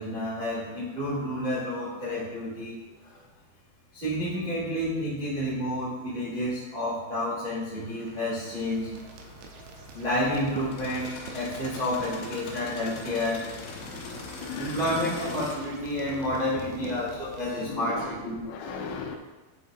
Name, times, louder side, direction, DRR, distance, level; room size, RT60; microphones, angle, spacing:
voice 1, 0.0-2.8 3.9-8.9 9.9-13.5 14.6-18.4, left 1 dB, 60° right, -10 dB, 0.5 m, -30 dB
sound 1, 7.8-15.5, left 3 dB, 70° left, 2.8 m, -42 dB
sound 2, 8.4-17.8, right 5 dB, 85° right, 2.7 m, -47 dB
voice 2, 14.4-14.8 16.0-17.1 17.6-19.2, left 5 dB, 90° left, 1 dB, 3.2 m, -38 dB
10.0 x 5.8 x 2.7 m, 1.2 s
omnidirectional pair, 5.7 m